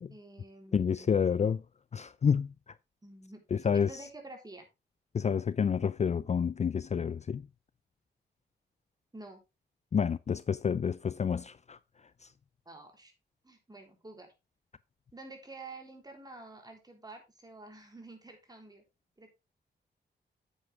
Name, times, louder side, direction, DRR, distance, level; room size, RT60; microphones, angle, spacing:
voice 1, 0.1-1.4 3.0-4.7 9.1-9.4 12.7-13.1 13.4-14.3 15.1-18.8 19.2-19.3, right 2 dB, 20° right, 3.6 m, -49 dB
voice 2, 0.7-1.6 1.9-2.7 3.5-4.0 5.1-7.4 9.9-11.8 12.2-12.3, left 7 dB, 40° left, 0.4 m, -29 dB
9.3 x 8.0 x 3.5 m
wide cardioid pair, 95°, 18 cm